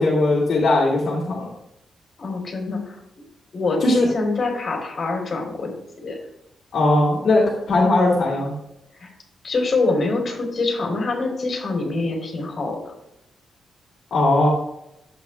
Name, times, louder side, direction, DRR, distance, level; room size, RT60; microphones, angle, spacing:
voice 1, 0.0-1.5 3.8-4.1 6.7-8.5 14.1-14.5, left 2 dB, 60° left, -4 dB, 2.1 m, -19 dB
voice 2, 2.2-3.0 3.5-5.7 6.0-6.2 9.0-9.1 9.4-12.9, left 3 dB, 40° left, 0 dB, 3.1 m, -25 dB
11.0 x 8.0 x 2.2 m, 0.82 s
wide cardioid pair, 135°, 0 cm